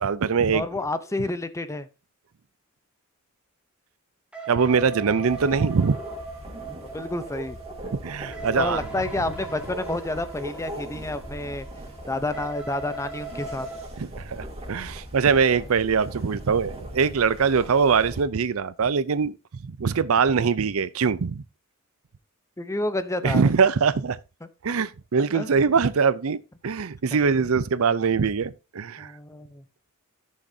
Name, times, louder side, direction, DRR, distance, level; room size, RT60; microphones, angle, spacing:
voice 1, 0.0-0.7 4.5-6.0 8.0-8.8 14.0-19.3 19.6-21.4 23.2-24.2 24.6-26.4 26.6-29.1, right 5 dB, 70° right, 0.5 m, -22 dB
voice 2, 0.5-1.9 6.9-7.6 8.5-11.7 12.1-13.7 22.6-23.5 25.3-25.5 27.2-27.3 29.0-29.6, left 2 dB, 15° left, 0.7 m, -29 dB
sound 1, 4.3-13.9, right 3 dB, 5° right, 1.8 m, -40 dB
sound 2, 5.3-18.2, right 1 dB, 30° right, 2.8 m, -40 dB
13.5 x 6.5 x 2.7 m
head